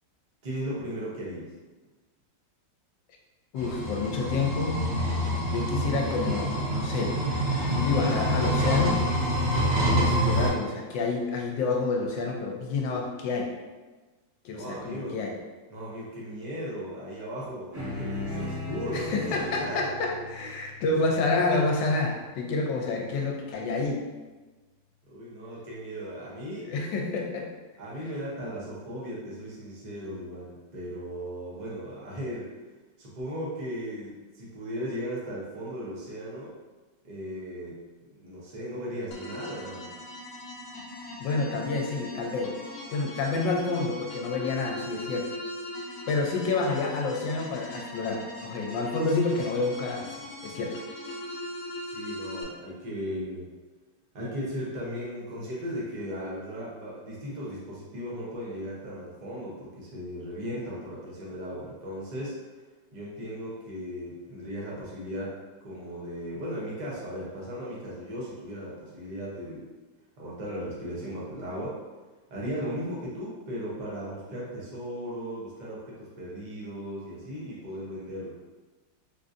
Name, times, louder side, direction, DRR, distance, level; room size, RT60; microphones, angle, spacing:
voice 1, 0.4-1.5 14.5-15.2 15.7-19.9 25.1-26.7 27.8-32.5 33.0-36.5 37.0-37.8 38.1-39.9 51.9-53.5 54.1-62.3 62.9-69.7 70.2-71.8 72.3-78.4, equal, 55° right, -6 dB, 0.4 m, -36 dB
voice 2, 3.5-4.8 5.5-7.2 7.7-9.0 9.9-13.5 14.4-15.3 18.9-24.0 26.6-27.5 41.2-42.6 42.9-45.4 46.1-50.1 50.4-50.8, left 3 dB, 80° left, 0 dB, 1.3 m, -28 dB
sound 1, 3.6-10.5, equal, 70° right, 1.6 m, -26 dB
sound 2, 17.7-22.5, left 2 dB, 35° right, 1.0 m, -38 dB
sound 3, 39.1-52.4, left 1 dB, 65° left, 0.8 m, -40 dB
3.6 x 2.5 x 2.5 m, 1.2 s
omnidirectional pair, 2.0 m